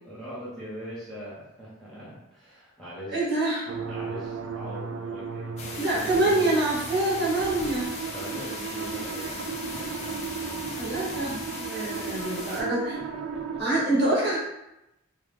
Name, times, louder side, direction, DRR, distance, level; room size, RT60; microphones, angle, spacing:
voice 1, 0.0-3.3 3.9-6.5 8.1-9.3 11.7-12.2 12.6-13.0 13.3-13.6, equal, 5° left, -9 dB, 0.9 m, -41 dB
voice 2, 3.1-3.7 5.8-7.9 10.8-13.0 13.6-14.4, right 2 dB, 50° right, -6 dB, 1.1 m, -25 dB
sound 1, 3.7-13.6, right 6 dB, 85° right, 0.4 m, -36 dB
sound 2, 5.6-12.6, left 2 dB, 35° left, 0.5 m, -38 dB
2.9 x 2.4 x 3.3 m, 0.89 s
head